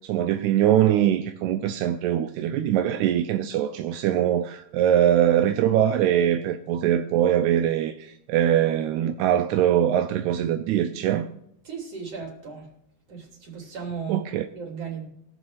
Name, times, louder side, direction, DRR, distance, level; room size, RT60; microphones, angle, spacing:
voice 1, 0.1-11.3 14.1-14.5, right 11 dB, 80° right, 1.8 m, -22 dB
voice 2, 11.6-12.7 13.1-14.3 14.5-15.1, right 6 dB, 45° right, 3.8 m, -35 dB
22.5 x 7.5 x 2.5 m
omnidirectional pair, 3.8 m